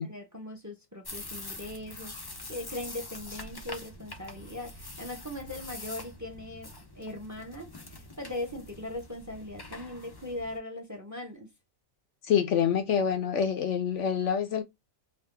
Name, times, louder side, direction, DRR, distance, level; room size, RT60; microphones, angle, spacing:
voice 1, 0.1-11.5, left 1 dB, 15° right, 0.8 m, -40 dB
sound 1, 1.0-10.6, left 2 dB, 30° left, 0.4 m, -44 dB
voice 2, 12.3-14.6, left 8 dB, 65° left, 0.9 m, -26 dB
3.8 x 2.5 x 3.4 m
omnidirectional pair, 1.4 m